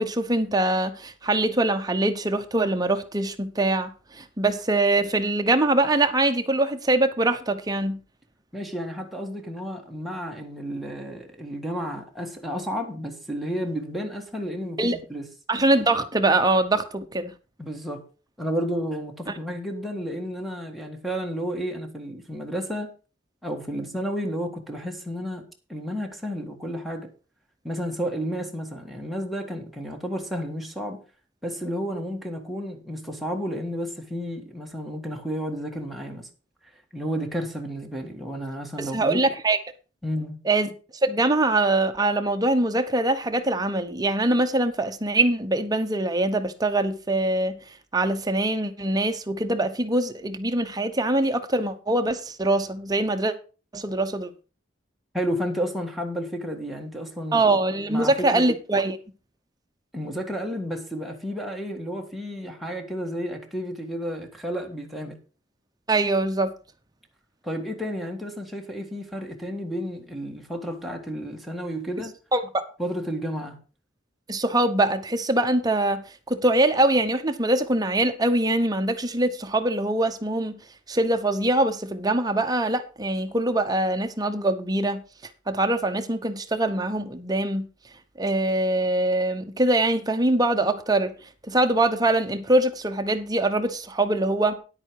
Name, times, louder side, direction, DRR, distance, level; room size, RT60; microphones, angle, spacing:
voice 1, 0.0-8.0 14.8-15.0 15.5-17.3 38.8-39.6 40.4-40.7 41.0-47.6 47.9-53.3 53.7-54.3 57.3-59.0 65.9-66.5 72.3-72.6 74.3-76.0 76.3-80.6 80.9-85.0 85.5-87.7 88.2-91.1 91.4-94.6, right 2 dB, 20° right, 1.0 m, -23 dB
voice 2, 8.5-15.3 17.6-18.0 18.4-22.9 23.4-27.1 27.6-31.0 31.4-36.3 36.9-39.2 40.0-40.4 55.1-57.5 57.9-58.4 59.9-65.2 67.4-72.1 72.8-73.6, equal, ahead, 1.7 m, -31 dB
10.0 x 8.7 x 4.7 m
head